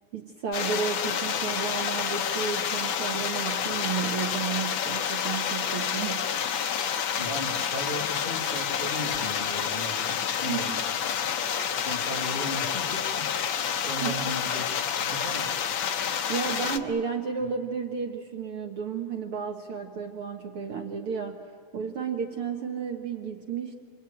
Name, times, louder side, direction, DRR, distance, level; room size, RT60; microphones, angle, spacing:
voice 1, 0.1-6.3 10.5-10.8 14.0-14.3 16.3-23.7, right 6 dB, 60° right, 3 dB, 1.7 m, -32 dB
sound 1, 0.5-16.8, left 8 dB, 75° left, 1.1 m, -29 dB
voice 2, 7.2-13.4 13.8-15.5 16.6-16.7, left 1 dB, 20° left, -2 dB, 2.0 m, -37 dB
28.0 x 22.0 x 9.0 m, 2.3 s
omnidirectional pair, 3.5 m